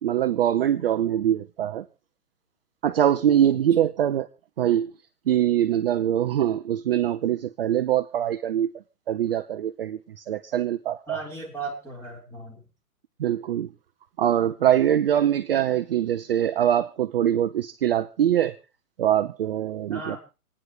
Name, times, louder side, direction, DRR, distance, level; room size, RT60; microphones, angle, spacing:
voice 1, 0.0-1.8 2.8-4.3 4.6-4.9 5.3-8.7 9.1-11.2 13.2-13.7 14.2-18.5 19.0-20.2, right 10 dB, 40° right, 0.6 m, -23 dB
voice 2, 11.1-12.6 19.9-20.2, right 3 dB, 5° left, 4.0 m, -36 dB
27.5 x 9.7 x 3.2 m
hypercardioid pair, 145°, 45 cm